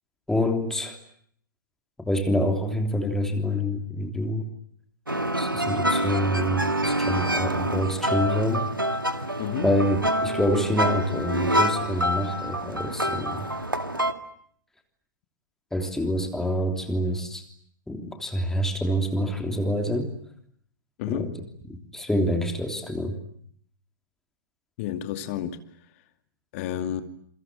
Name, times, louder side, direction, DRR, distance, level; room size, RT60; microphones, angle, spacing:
voice 1, 0.3-1.0 2.0-4.5 5.3-8.7 9.6-13.5 15.7-17.4 17.9-20.1 21.1-21.3 21.7-23.2, equal, 5° left, 3.2 m, -27 dB
sound 1, 5.1-14.1, right 1 dB, 85° right, 2.0 m, -26 dB
voice 2, 9.4-9.8 21.0-21.4 24.8-25.6 26.5-27.0, left 10 dB, 40° left, 2.5 m, -30 dB
28.0 x 24.5 x 8.8 m
figure-of-eight pair, 105°, 11 cm